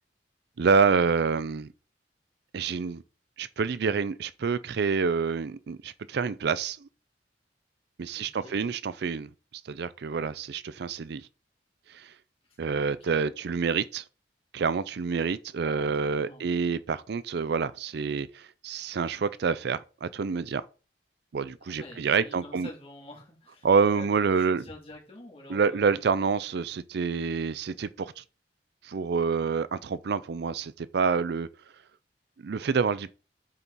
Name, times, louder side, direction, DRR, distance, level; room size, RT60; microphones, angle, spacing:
voice 1, 0.6-1.7 2.5-3.0 3.4-6.9 8.0-9.3 9.7-11.3 11.9-12.1 12.6-14.0 14.5-20.7 21.3-22.7 23.6-24.6 25.5-28.2 28.8-31.5 32.4-33.1, right 5 dB, 65° right, 0.4 m, -27 dB
voice 2, 8.1-8.6 12.5-12.6 12.9-13.1 15.6-15.9 16.2-16.5 21.6-23.7 23.9-25.9, left 1 dB, 35° left, 2.8 m, -47 dB
8.7 x 4.6 x 4.1 m
head